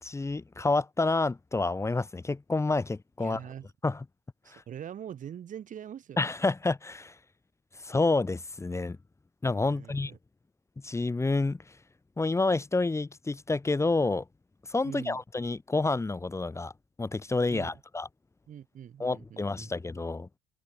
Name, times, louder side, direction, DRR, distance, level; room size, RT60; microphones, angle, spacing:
voice 1, 0.0-3.4 3.8-4.0 4.5-4.6 6.2-7.1 7.8-9.0 9.4-10.1 10.8-11.6 12.2-14.2 14.7-16.7 17.0-18.1 19.0-20.3, left 3 dB, 15° left, 1.9 m, -29 dB
voice 2, 3.2-3.7 4.4-6.2 9.7-10.2 14.8-15.2 17.5-17.8 18.5-19.7, right 9 dB, 50° right, 2.8 m, -43 dB
cardioid pair, 110°, 17 cm